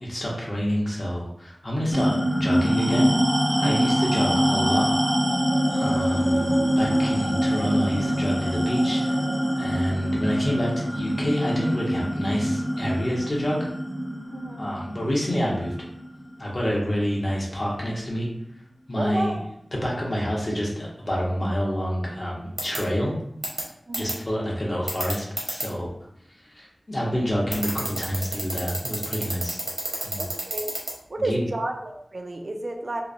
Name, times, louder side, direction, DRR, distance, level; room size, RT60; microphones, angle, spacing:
voice 1, 0.0-3.1 3.6-4.9 5.7-9.2 9.6-13.6 14.6-15.7 16.4-18.3 18.9-19.4 19.7-23.1 24.0-25.9 26.6-29.6 30.0-30.3 31.2-31.4, equal, 45° left, -4 dB, 0.9 m, -28 dB
sound 1, 1.9-16.7, equal, 10° right, 0.6 m, -24 dB
voice 2, 3.6-3.9 14.3-14.6 19.0-19.3 23.9-24.2 30.2-30.7 31.1-33.0, right 2 dB, 60° right, 3 dB, 0.3 m, -31 dB
sound 2, 22.6-22.8 23.4-23.6 23.9-24.1 24.9-25.6 27.5-30.9, right 2 dB, 85° right, 0.9 m, -28 dB
3.1 x 2.0 x 2.5 m, 0.75 s
wide cardioid pair, 55°, 0 cm